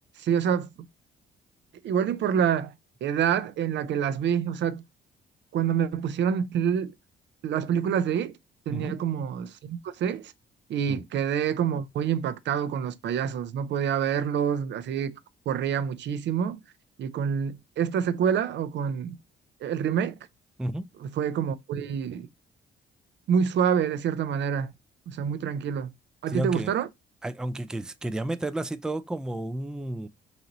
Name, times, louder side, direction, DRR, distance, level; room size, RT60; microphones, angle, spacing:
voice 1, 0.2-0.7 1.8-2.7 3.0-4.8 5.5-6.9 7.4-8.4 8.7-10.3 10.7-15.2 15.5-16.6 17.0-19.2 19.6-20.1 21.0-22.3 23.3-24.7 25.1-25.9 26.2-26.9, right 8 dB, 65° right, 0.5 m, -27 dB
voice 2, 26.3-26.7 27.2-30.1, right 1 dB, 5° right, 0.4 m, -32 dB
4.0 x 2.9 x 3.9 m
cardioid pair, 90°, 20 cm